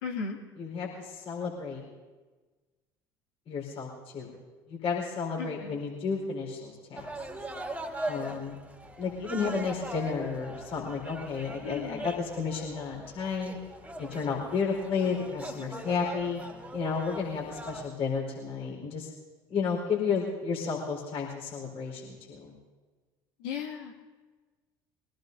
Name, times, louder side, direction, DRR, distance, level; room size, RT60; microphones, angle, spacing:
voice 1, 0.0-0.4 5.4-5.8 11.6-12.1 23.4-23.9, left 6 dB, 70° left, -2 dB, 2.4 m, -36 dB
voice 2, 0.6-1.8 3.5-4.3 4.7-7.1 8.1-8.6 9.0-13.6 14.0-16.4 16.7-19.1 19.5-22.5, left 5 dB, 50° left, -2 dB, 4.6 m, -32 dB
sound 1, 7.0-17.9, right 1 dB, 10° right, 2.5 m, -40 dB
24.0 x 18.0 x 2.8 m, 1.3 s
figure-of-eight pair, 60°, 12 cm